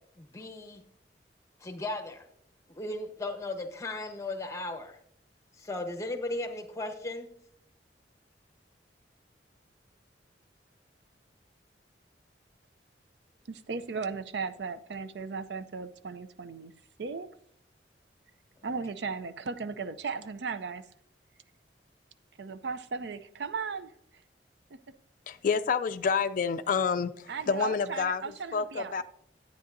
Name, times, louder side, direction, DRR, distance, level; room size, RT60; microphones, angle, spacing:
voice 1, 0.2-0.8 1.6-2.3 2.7-5.0 5.6-7.3, left 2 dB, 15° left, 1.0 m, -36 dB
voice 2, 13.5-16.7 17.0-17.3 18.6-20.9 22.4-23.9 24.7-24.8 27.3-29.0, right 5 dB, 75° right, 0.5 m, -36 dB
voice 3, 25.3-29.0, left 6 dB, 50° left, 0.3 m, -29 dB
11.0 x 9.2 x 2.6 m
head